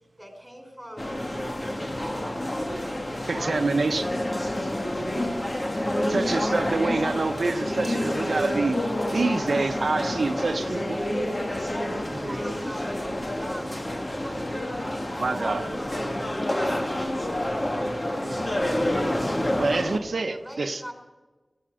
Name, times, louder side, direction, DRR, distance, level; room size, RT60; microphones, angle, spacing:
voice 1, 0.2-1.1 1.3-2.2 4.4-4.9 8.1-8.7 11.8-14.6 17.3-17.4 19.4-20.9, equal, 5° right, 3 dB, 5.1 m, -43 dB
sound 1, 1.0-20.0, left 1 dB, 35° left, 2.6 m, -28 dB
voice 2, 3.2-4.1 6.1-8.8 9.1-11.0 15.2-15.7 19.6-20.8, right 3 dB, 80° right, 8 dB, 1.0 m, -26 dB
voice 3, 11.9-12.4 16.0-16.4 17.3-17.9 18.2-18.5 18.8-19.3 19.8-20.0, right 2 dB, 60° right, 6 dB, 1.3 m, -42 dB
19.5 x 14.0 x 5.1 m, 1.1 s
cardioid pair, 45°, 0 cm